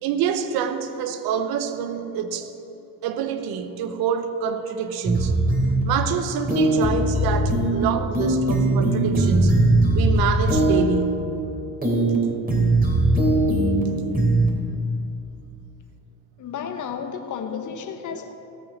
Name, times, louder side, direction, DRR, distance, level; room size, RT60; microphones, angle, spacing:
voice 1, 0.0-2.5 3.0-5.4 5.8-9.7 9.9-11.2 18.1-18.2, right 7 dB, 70° right, 1.0 m, -26 dB
sound 1, 5.0-5.8 6.5-7.8 8.1-10.8 11.8-12.2 12.5-13.8 14.1-14.5, right 1 dB, 25° right, 3.1 m, -20 dB
voice 2, 16.4-18.3, left 7 dB, 50° left, 1.0 m, -32 dB
17.0 x 6.6 x 6.0 m
supercardioid pair, 75°, 38 cm